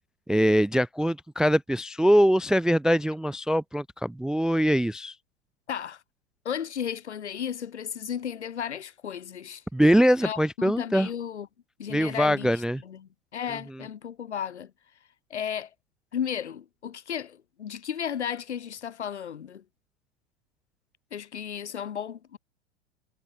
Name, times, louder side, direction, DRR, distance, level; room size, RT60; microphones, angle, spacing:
voice 1, 0.3-5.1 9.7-11.1 11.9-12.8, equal, ahead, 0.3 m, -23 dB
voice 2, 5.7-6.0 6.5-9.6 10.2-11.5 11.8-14.7 15.3-15.7 16.1-19.6 21.1-22.4, left 8 dB, 80° left, 2.1 m, -34 dB
figure-of-eight pair, 95°, 34 cm